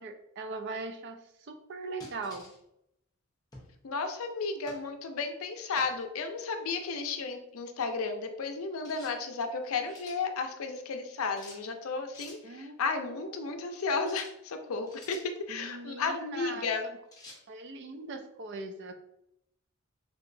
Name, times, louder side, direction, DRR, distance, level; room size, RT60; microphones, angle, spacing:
voice 1, 0.0-2.5 12.4-13.6 15.5-17.0 17.5-18.9, right 3 dB, 50° right, 7 dB, 0.4 m, -41 dB
sound 1, 2.0-2.6 3.5-3.8 4.7-4.9 5.8-6.0 8.8-9.2 9.6-10.2 11.4-11.6 12.1-12.4 14.0-14.4 14.9-15.3 17.1-17.4, left 2 dB, 15° left, 0.8 m, -50 dB
voice 2, 3.8-15.2 15.5-16.9, left 4 dB, 75° left, 6 dB, 0.5 m, -33 dB
3.5 x 2.9 x 2.5 m, 0.79 s
head